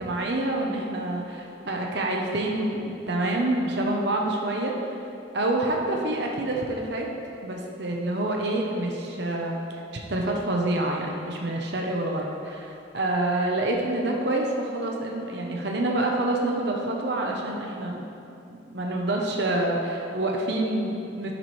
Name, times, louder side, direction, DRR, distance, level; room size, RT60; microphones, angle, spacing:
voice 1, 0.0-4.8 5.3-7.1 7.4-9.6 10.1-18.0 18.5-21.3, right 1 dB, 60° right, 0 dB, 0.9 m, -27 dB
10.5 x 7.2 x 3.3 m, 2.6 s
head